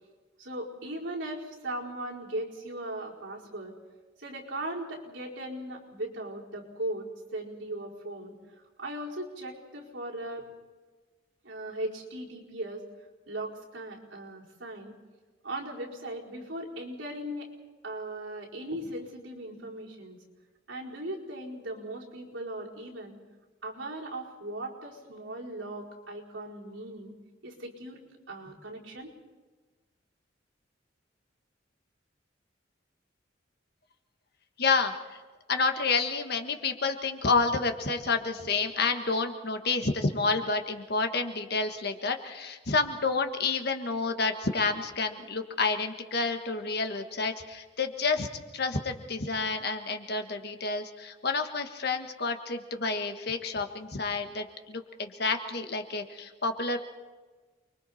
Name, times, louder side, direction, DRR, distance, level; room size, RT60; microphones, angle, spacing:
voice 1, 0.4-3.7 4.2-8.3 8.8-10.4 11.4-12.8 13.3-14.9 15.4-17.5 17.8-20.2 20.7-23.2 23.6-27.1 27.4-28.0 28.3-29.1, right 1 dB, 75° right, -4 dB, 4.8 m, -38 dB
voice 2, 34.6-34.9 35.5-48.3 48.5-56.8, left 4 dB, 60° left, 5 dB, 1.5 m, -29 dB
29.0 x 22.5 x 4.3 m, 1.3 s
head